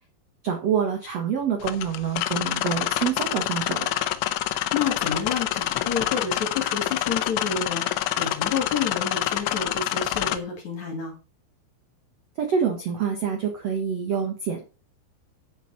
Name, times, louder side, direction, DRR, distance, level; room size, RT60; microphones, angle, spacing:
voice 1, 0.4-3.9 12.4-14.7, right 7 dB, 80° right, 3 dB, 1.4 m, -26 dB
sound 1, 1.6-10.4, left 14 dB, 85° left, 3.2 m, -27 dB
voice 2, 4.5-11.1, left 6 dB, 45° left, 2 dB, 2.9 m, -30 dB
9.8 x 7.9 x 4.1 m, 0.33 s
omnidirectional pair, 5.4 m